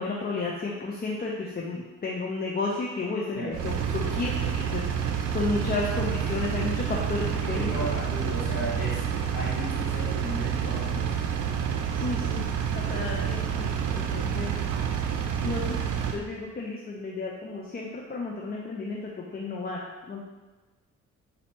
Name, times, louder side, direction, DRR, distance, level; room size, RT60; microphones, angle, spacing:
voice 1, 0.0-4.3 4.7-7.7 11.9-12.4 12.7-14.5 15.4-15.8 16.1-20.2, left 3 dB, 30° left, -3 dB, 0.6 m, -32 dB
Engine, 3.5-16.2, right 8 dB, 80° right, 0.5 m, -28 dB
voice 2, 7.5-11.3, equal, 80° left, -6 dB, 1.5 m, -35 dB
4.2 x 2.8 x 4.2 m, 1.2 s
cardioid pair, 90°, 30 cm